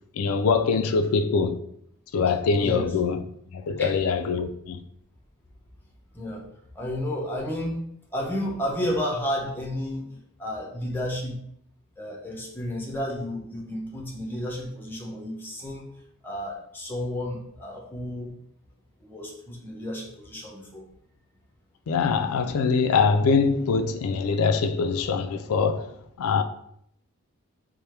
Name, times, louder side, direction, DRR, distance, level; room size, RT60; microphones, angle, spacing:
voice 1, 0.2-1.6 2.1-3.2 3.5-4.8 21.9-25.9 26.2-26.4, left 5 dB, 75° left, 0.4 m, -23 dB
voice 2, 2.6-2.9 3.8-3.9 6.1-6.4 6.7-7.8 8.1-11.4 12.0-15.9 16.2-18.4 19.0-20.9, equal, 10° left, 0.6 m, -32 dB
3.4 x 2.1 x 4.3 m
head